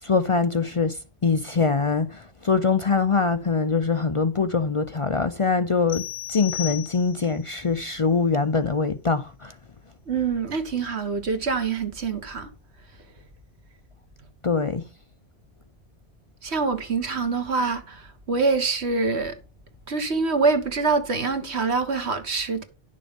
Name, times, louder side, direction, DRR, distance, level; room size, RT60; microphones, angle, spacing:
voice 1, 0.0-6.0 6.3-9.5 14.4-14.8, left 4 dB, 40° left, 0.5 m, -23 dB
sound 1, 5.9-7.4, left 13 dB, 85° left, 1.4 m, -34 dB
voice 2, 10.1-12.5 16.4-19.4 19.9-22.6, right 4 dB, 85° right, 1.8 m, -25 dB
11.0 x 6.5 x 5.2 m
omnidirectional pair, 1.1 m